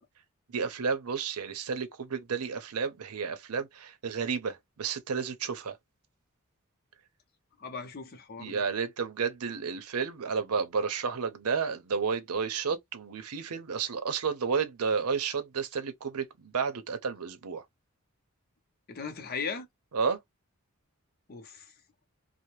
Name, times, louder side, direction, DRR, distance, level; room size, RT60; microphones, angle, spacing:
voice 1, 0.5-5.8 8.4-17.6 19.9-20.2, right 5 dB, 85° right, 0.6 m, -31 dB
voice 2, 7.6-8.6 18.9-19.7 21.3-21.7, left 5 dB, 45° left, 0.6 m, -38 dB
2.7 x 2.0 x 3.0 m
head